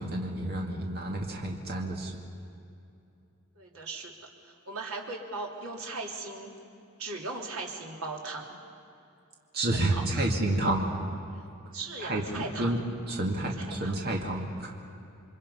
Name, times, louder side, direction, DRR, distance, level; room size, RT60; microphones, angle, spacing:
voice 1, 0.0-2.2 9.5-10.9 12.0-12.8 13.1-14.7, right 1 dB, 45° right, 0 dB, 2.2 m, -30 dB
voice 2, 3.5-6.6 7.0-8.6 9.7-10.3 11.7-12.7 13.6-13.9, right 3 dB, 75° right, 0 dB, 2.8 m, -38 dB
28.0 x 24.0 x 5.5 m, 2.6 s
head